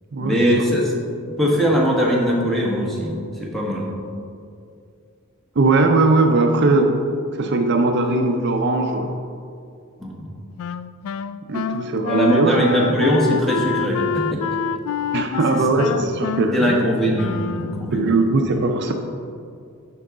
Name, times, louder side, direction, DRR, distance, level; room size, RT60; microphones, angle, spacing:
voice 1, 0.2-0.9 1.3-3.9 10.0-10.3 12.1-14.8 15.5-15.9 16.5-18.2, equal, ahead, -3 dB, 1.2 m, -21 dB
voice 2, 5.6-6.9 7.3-9.1 11.5-12.8 15.1-16.8 17.9-18.9, right 3 dB, 55° right, 4 dB, 0.5 m, -19 dB
Wind instrument woodwind instrument, 10.6-18.0, left 7 dB, 85° left, 0.3 m, -27 dB
10.5 x 4.7 x 3.7 m, 2.4 s
head